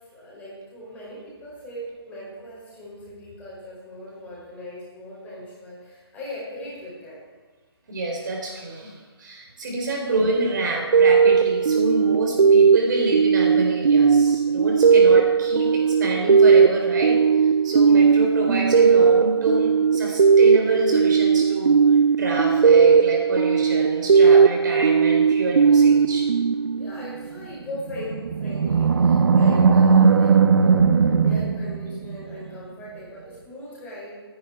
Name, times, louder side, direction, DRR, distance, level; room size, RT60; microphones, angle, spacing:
voice 1, 0.0-7.3 9.7-9.8 14.8-15.2 26.7-30.9 31.2-34.2, left 1 dB, 10° left, -6 dB, 5.4 m, -39 dB
voice 2, 7.9-21.8 22.2-26.3, right 2 dB, 45° right, 0 dB, 4.4 m, -27 dB
sound 1, 10.9-27.3, right 6 dB, 80° right, 0.4 m, -17 dB
Animal, 27.8-32.3, right 5 dB, 65° right, 0.9 m, -18 dB
22.0 x 10.5 x 4.7 m, 1.3 s
figure-of-eight pair, 150°, 14 cm